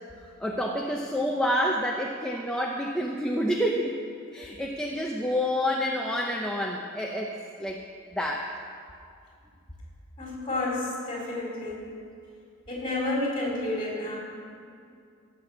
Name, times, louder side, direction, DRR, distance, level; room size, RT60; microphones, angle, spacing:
voice 1, 0.4-4.0 4.3-7.8 8.1-8.6, equal, 5° left, -1 dB, 0.7 m, -28 dB
voice 2, 10.2-11.9 12.7-14.2, left 2 dB, 25° left, -5 dB, 4.2 m, -30 dB
16.5 x 6.8 x 7.3 m, 2.4 s
head